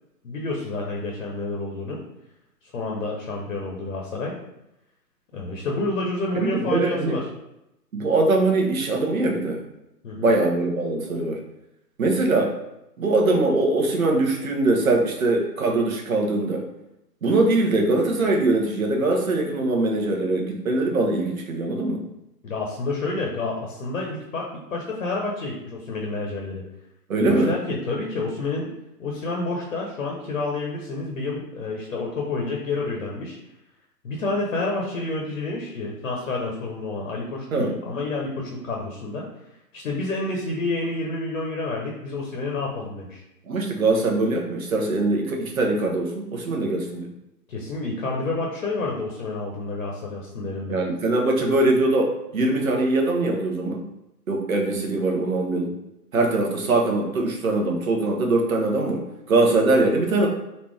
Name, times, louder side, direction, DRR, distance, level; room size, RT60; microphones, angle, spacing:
voice 1, 0.2-2.0 2.7-4.3 5.3-7.2 10.0-10.3 22.4-26.6 27.2-28.7 29.0-33.4 34.0-39.2 39.7-43.2 47.5-50.8, left 3 dB, 55° left, -1 dB, 1.1 m, -29 dB
voice 2, 6.3-7.2 7.9-9.6 10.2-11.4 12.0-12.6 13.0-16.6 17.2-22.0 27.1-27.6 37.5-37.7 43.4-47.1 50.7-53.8 54.3-55.7 56.1-60.3, right 2 dB, 55° right, 0 dB, 1.1 m, -22 dB
4.2 x 2.8 x 3.3 m, 0.89 s
figure-of-eight pair, 145°, 49 cm